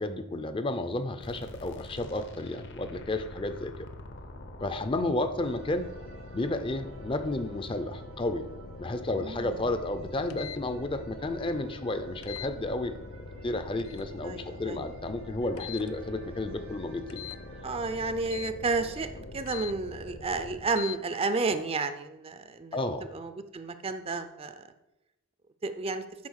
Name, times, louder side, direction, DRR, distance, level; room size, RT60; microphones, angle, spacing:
voice 1, 0.0-3.9 4.6-5.9 6.3-8.5 8.8-12.9 13.4-17.3 22.7-23.1, left 2 dB, 25° left, 10 dB, 0.5 m, -32 dB
sound 1, 1.2-20.8, left 1 dB, 60° left, 0.9 m, -44 dB
sound 2, 5.4-17.7, right 2 dB, 85° right, 1.8 m, -55 dB
voice 2, 9.1-9.7 14.2-14.8 17.6-22.8 23.1-24.6 25.6-26.0, right 3 dB, 25° right, 10 dB, 0.5 m, -32 dB
sound 3, 10.3-10.6 12.2-12.5 13.8-14.1 15.6-15.9 17.1-17.4 18.3-18.5 19.5-19.7 20.7-21.0, left 14 dB, 80° left, 0.4 m, -41 dB
8.4 x 4.9 x 6.4 m, 0.94 s
head